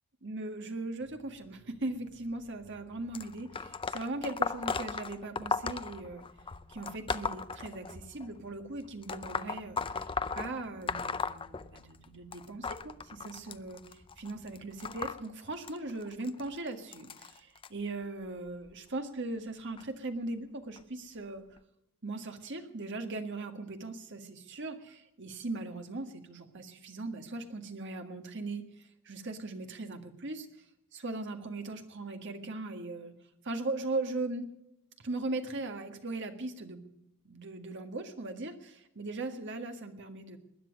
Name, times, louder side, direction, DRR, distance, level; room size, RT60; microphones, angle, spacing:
voice 1, 0.2-6.3 6.7-10.1 10.4-21.4 22.0-30.5 30.9-33.2 33.4-34.5 35.0-36.8 37.3-40.4, right 2 dB, 60° right, 6 dB, 1.8 m, -39 dB
sound 1, 1.0-15.1, equal, 75° left, 7.0 m, -61 dB
sound 2, 3.1-8.3 9.0-12.0 12.3-17.7 18.5-18.7 19.8-19.9 20.8-20.9 21.6-21.7, left 5 dB, 25° left, 0.5 m, -36 dB
20.0 x 10.5 x 6.5 m, 0.87 s
head